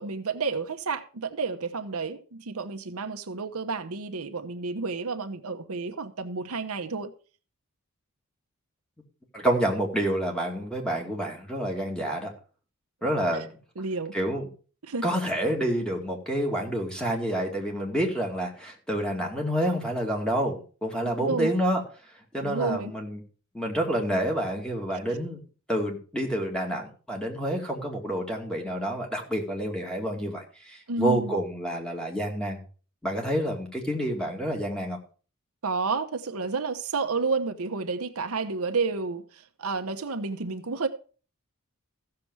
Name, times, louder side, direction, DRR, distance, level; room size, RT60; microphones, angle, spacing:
voice 1, 0.0-7.1 13.3-13.4 13.8-14.2 14.8-15.1 21.2-21.5 22.4-22.9 24.9-25.0 30.9-31.4 35.6-40.9, right 4 dB, 75° right, 1.0 m, -30 dB
voice 2, 9.3-12.3 13.0-13.5 14.1-14.4 15.0-21.8 22.3-23.2 23.5-25.4 25.7-32.6 33.0-35.0, right 1 dB, 5° left, 2.3 m, -28 dB
15.0 x 6.8 x 4.7 m
head